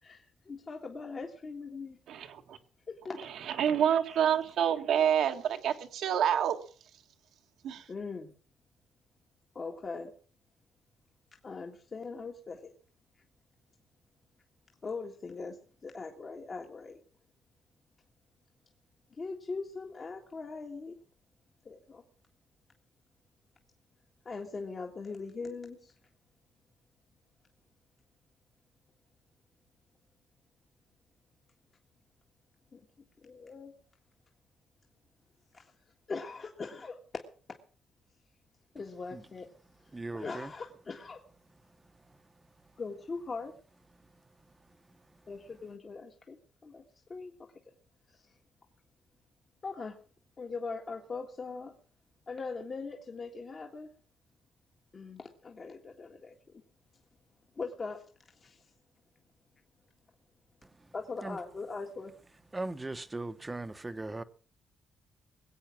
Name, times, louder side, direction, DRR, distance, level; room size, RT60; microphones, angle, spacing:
voice 1, 0.0-2.0 2.9-3.3 4.1-4.2 7.9-8.3 9.6-10.2 11.4-12.7 14.8-17.0 19.1-21.0 21.7-22.0 24.3-25.9 32.7-32.9 33.2-33.7 35.5-35.7 36.1-37.6 38.7-39.5 40.1-41.2 42.8-43.6 45.3-46.8 47.1-47.3 48.1-48.2 49.6-50.0 50.4-51.8 52.3-53.9 54.9-56.6 57.6-58.0 58.3-58.7 60.9-62.1, left 4 dB, 40° left, 1.8 m, -41 dB
voice 2, 2.1-2.6 3.6-6.6 7.6-7.8, right 9 dB, 75° right, 1.7 m, -27 dB
voice 3, 39.9-40.5 61.2-61.4 62.5-64.2, right 2 dB, 20° right, 1.1 m, -38 dB
21.0 x 8.3 x 6.0 m
cardioid pair, 90°, 0 cm